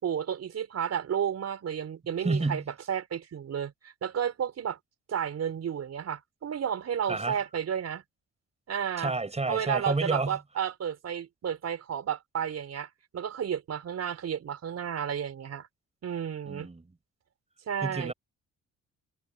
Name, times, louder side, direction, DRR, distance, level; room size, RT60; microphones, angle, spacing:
voice 1, 0.0-2.6 2.9-4.8 5.1-8.0 8.7-9.1 9.5-15.7 16.0-16.7 17.7-18.1, right 8 dB, 55° right, 5.0 m, -32 dB
voice 2, 2.2-2.6 7.1-7.4 9.0-10.4 16.5-16.9 17.8-18.1, right 3 dB, 20° right, 7.3 m, -30 dB
cardioid pair, 90°, 30 cm